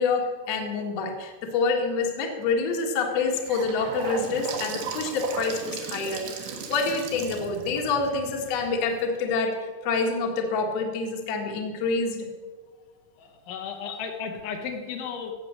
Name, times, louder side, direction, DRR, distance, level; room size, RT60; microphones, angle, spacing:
voice 1, 0.0-9.5 9.8-12.3 13.8-13.9, left 4 dB, 55° left, 1 dB, 1.9 m, -27 dB
Gurgling / Sink (filling or washing) / Bathtub (filling or washing), 3.1-9.2, right 5 dB, 70° right, 3.3 m, -36 dB
voice 2, 13.2-15.3, left 6 dB, 80° left, 4 dB, 3.6 m, -34 dB
16.5 x 7.8 x 6.5 m, 1.5 s
omnidirectional pair, 5.4 m